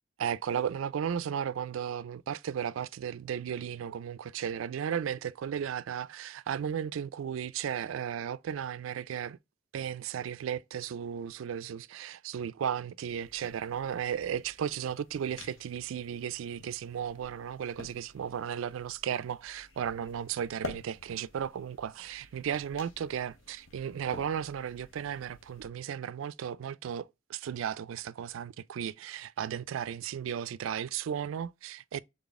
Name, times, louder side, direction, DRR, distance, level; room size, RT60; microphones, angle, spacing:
voice 1, 0.2-9.4 9.7-32.0, right 8 dB, 75° right, 0.3 m, -35 dB
sound 1, 13.1-25.7, left 2 dB, 70° left, 1.0 m, -50 dB
4.0 x 3.7 x 3.5 m
head